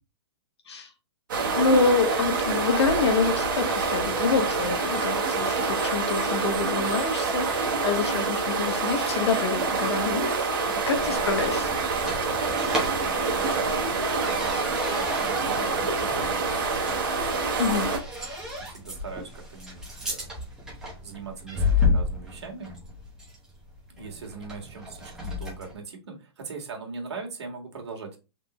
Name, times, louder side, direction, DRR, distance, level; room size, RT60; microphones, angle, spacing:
sound 1, 1.3-18.0, right 4 dB, 50° right, 1.2 m, -26 dB
voice 1, 1.5-10.4 10.9-11.7 17.6-17.9, left 4 dB, 75° left, 5 dB, 1.2 m, -26 dB
voice 2, 8.0-8.4 10.8-11.1 13.2-17.3 18.6-20.3 21.0-22.7 24.0-28.2, right 4 dB, 75° right, 1 dB, 1.8 m, -40 dB
sound 2, 10.7-25.8, left 3 dB, 5° right, 0.9 m, -32 dB
3.8 x 3.7 x 3.0 m, 0.29 s
hypercardioid pair, 170°, 14 cm